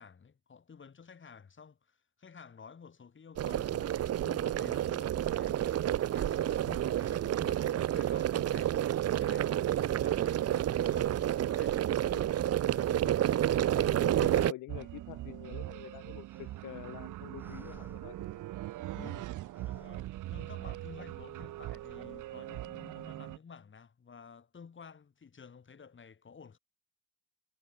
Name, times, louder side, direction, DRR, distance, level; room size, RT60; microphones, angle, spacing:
voice 1, 0.0-13.1 19.4-26.6, left 6 dB, 40° left, 6.2 m, -53 dB
sound 1, 3.4-14.5, right 11 dB, 55° right, 0.7 m, -29 dB
voice 2, 11.9-12.3 12.9-13.1 13.7-18.4 18.9-19.2, left 16 dB, 90° left, 2.1 m, -47 dB
sound 2, 14.7-23.4, right 15 dB, 80° right, 1.4 m, -42 dB
sound 3, 16.3-16.9 17.3-19.2 19.5-21.0, right 1 dB, 5° right, 7.0 m, -59 dB
cardioid pair, 90°, 30 cm